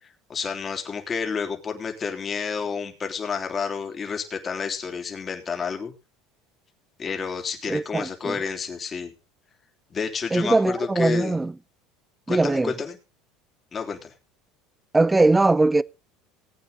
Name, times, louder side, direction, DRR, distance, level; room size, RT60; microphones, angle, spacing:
voice 1, 0.0-5.9 7.0-9.1 9.9-11.3 12.3-13.0 13.7-14.1, left 5 dB, 30° left, 3.4 m, -30 dB
voice 2, 7.7-8.4 10.3-11.5 12.3-12.7 14.9-15.8, right 2 dB, 15° right, 0.6 m, -20 dB
19.5 x 8.8 x 4.0 m
supercardioid pair, 90°, 0 cm